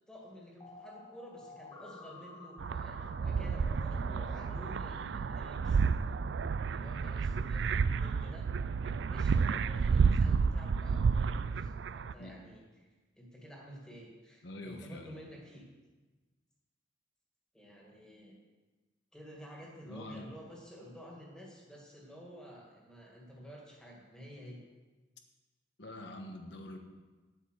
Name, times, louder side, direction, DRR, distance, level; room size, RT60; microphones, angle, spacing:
voice 1, 0.1-6.0 6.7-8.5 8.8-12.9 13.2-15.7 17.5-18.4 19.1-24.6, equal, 5° left, -2 dB, 2.0 m, -51 dB
sound 1, 0.6-4.5, left 2 dB, 25° left, 1.0 m, -51 dB
sound 2, 2.6-12.1, right 5 dB, 60° right, 0.3 m, -31 dB
voice 2, 14.4-15.1 19.9-20.3 25.8-26.8, left 1 dB, 60° left, 4 dB, 1.3 m, -45 dB
10.0 x 7.8 x 6.4 m, 1.3 s
head